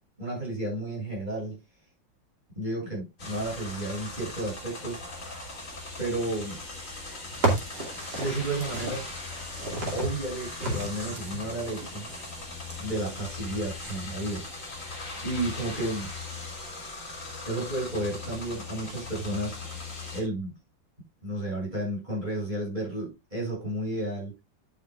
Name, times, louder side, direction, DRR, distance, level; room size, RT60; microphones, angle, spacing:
voice 1, 0.2-1.6 2.5-5.0 6.0-6.6 8.1-9.1 9.9-12.1 12.8-14.8 15.2-16.1 17.5-19.6 20.1-20.5 21.2-24.3, right 1 dB, 25° right, 7.7 m, -32 dB
sound 1, 3.2-20.2, left 3 dB, 45° left, 3.1 m, -39 dB
sound 2, 7.3-14.5, right 2 dB, 60° right, 3.2 m, -34 dB
11.5 x 8.8 x 2.4 m
omnidirectional pair, 2.0 m